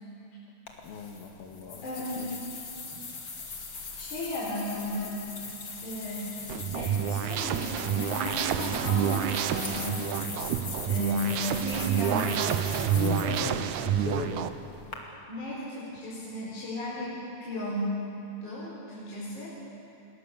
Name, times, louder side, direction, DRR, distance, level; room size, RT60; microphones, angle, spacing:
sound 1, 0.7-15.0, left 4 dB, 35° left, 2.7 m, -41 dB
voice 1, 0.8-1.9 2.2-2.6 12.9-14.6, left 6 dB, 75° left, 3 dB, 3.7 m, -37 dB
voice 2, 1.8-2.3 4.0-5.1 5.8-6.4 6.7-10.2 10.9-12.5 15.3-18.0 18.4-19.6, equal, 55° left, -6 dB, 5.5 m, -34 dB
sound 2, 6.5-14.5, right 9 dB, 70° right, 1.9 m, -29 dB
29.0 x 21.5 x 7.0 m, 2.7 s
omnidirectional pair, 4.2 m